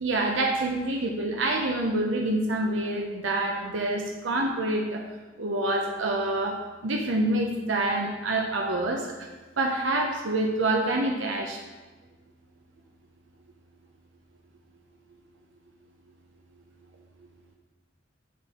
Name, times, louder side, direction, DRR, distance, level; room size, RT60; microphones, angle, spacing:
voice 1, 0.0-5.0 5.4-6.6 6.8-9.3 9.6-11.6, right 2 dB, 80° right, 1 dB, 0.7 m, -27 dB
8.2 x 4.3 x 3.6 m, 1.2 s
head